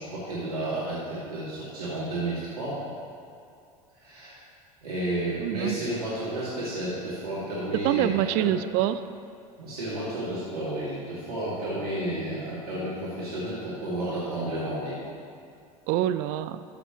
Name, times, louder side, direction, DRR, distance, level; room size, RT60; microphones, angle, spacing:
voice 1, 0.0-2.8 4.0-4.4 4.8-8.5 9.6-15.0, right 1 dB, 85° right, -10 dB, 2.3 m, -32 dB
voice 2, 5.4-5.9 7.8-9.0 15.9-16.6, right 12 dB, 50° right, 12 dB, 0.4 m, -26 dB
13.5 x 6.9 x 3.1 m, 2.5 s
hypercardioid pair, 75°, 19 cm